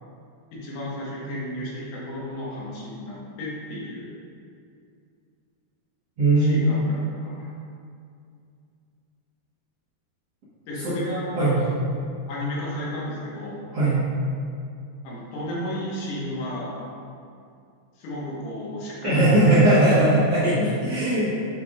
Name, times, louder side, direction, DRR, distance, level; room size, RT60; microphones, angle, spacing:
voice 1, 0.5-4.1 6.4-7.5 10.7-11.7 12.3-13.6 15.0-16.8 18.0-19.6 19.9-20.1, left 1 dB, 80° left, -6 dB, 3.3 m, -33 dB
voice 2, 6.2-6.8 10.8-11.0 11.3-11.6 13.7-14.0 19.0-21.4, right 1 dB, 65° right, -13 dB, 1.6 m, -19 dB
8.1 x 5.7 x 2.4 m, 2.4 s
omnidirectional pair, 4.8 m